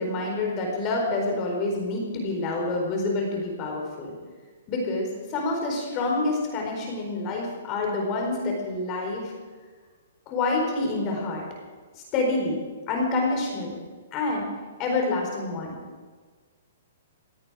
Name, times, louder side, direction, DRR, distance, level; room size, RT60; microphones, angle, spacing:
voice 1, 0.0-4.1 4.7-9.3 10.3-11.4 11.9-12.6 12.9-13.8 14.1-14.5 14.8-15.8, left 2 dB, 30° left, 0 dB, 4.3 m, -27 dB
17.0 x 16.5 x 4.9 m, 1.4 s
hypercardioid pair, 150°, 0 cm